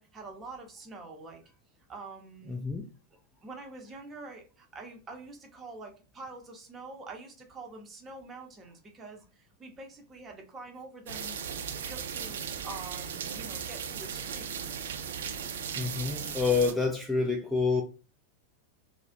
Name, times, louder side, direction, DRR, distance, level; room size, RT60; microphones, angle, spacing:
voice 1, 0.0-1.4 1.9-2.6 3.4-12.4 12.6-14.5, right 3 dB, 25° right, 0.7 m, -46 dB
voice 2, 2.5-2.9 15.4-15.5 15.8-17.8, left 4 dB, 5° left, 0.3 m, -28 dB
sound 1, 11.1-16.7, right 7 dB, 60° right, 0.4 m, -37 dB
2.4 x 2.1 x 2.5 m
figure-of-eight pair, 90°, 0 cm